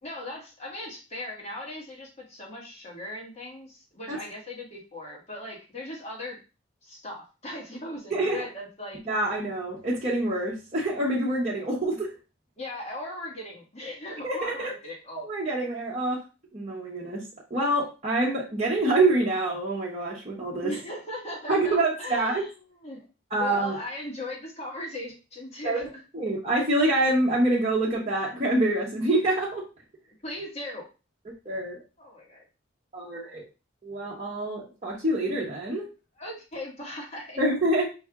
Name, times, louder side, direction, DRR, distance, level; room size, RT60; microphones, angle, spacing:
voice 1, 0.0-6.4 6.8-9.0 12.6-15.7 20.6-23.1 23.4-25.9 30.2-30.8 32.0-32.4 33.1-33.3 36.2-37.4, left 1 dB, 30° left, -2 dB, 1.5 m, -38 dB
voice 2, 9.1-12.1 14.2-14.7 15.2-16.2 16.5-17.2 17.5-20.7 21.5-22.4 23.3-23.8 25.6-25.9 26.1-29.6 31.4-31.8 32.9-33.4 33.8-35.9 37.4-37.9, right 2 dB, 30° right, -7 dB, 0.9 m, -26 dB
5.5 x 2.6 x 3.5 m, 0.31 s
head